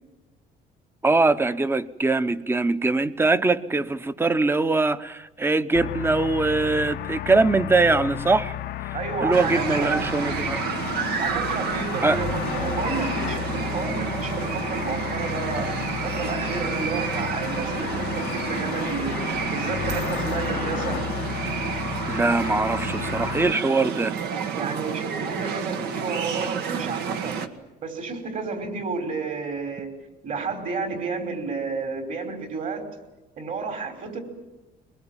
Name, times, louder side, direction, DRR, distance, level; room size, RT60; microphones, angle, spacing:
voice 1, 1.0-8.5 8.8-10.6 12.0-12.2 22.1-24.1, right 3 dB, 15° right, 14 dB, 0.9 m, -22 dB
sound 1, 5.7-23.5, left 13 dB, 70° left, 0.7 m, -32 dB
voice 2, 8.9-10.0 11.1-15.7 16.0-19.2 19.5-21.0 24.5-27.4 27.8-29.9 30.2-32.8 33.4-34.2, right 4 dB, 50° right, 5 dB, 5.0 m, -31 dB
sound 2, 9.3-27.5, right 7 dB, 75° right, 1.6 m, -30 dB
22.0 x 22.0 x 9.0 m, 1.1 s
cardioid pair, 110°, 17 cm